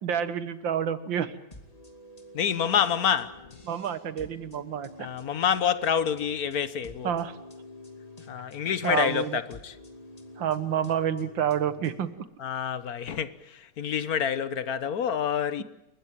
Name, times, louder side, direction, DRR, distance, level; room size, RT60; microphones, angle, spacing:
voice 1, 0.0-1.3 3.7-5.1 7.0-7.4 8.8-9.4 10.4-12.1, right 9 dB, 80° right, 2.0 m, -28 dB
sound 1, 1.5-12.2, left 2 dB, 20° left, 2.6 m, -49 dB
voice 2, 2.3-3.4 5.0-7.1 8.3-9.7 12.4-15.6, left 8 dB, 55° left, 1.4 m, -27 dB
29.5 x 15.0 x 8.8 m
omnidirectional pair, 2.0 m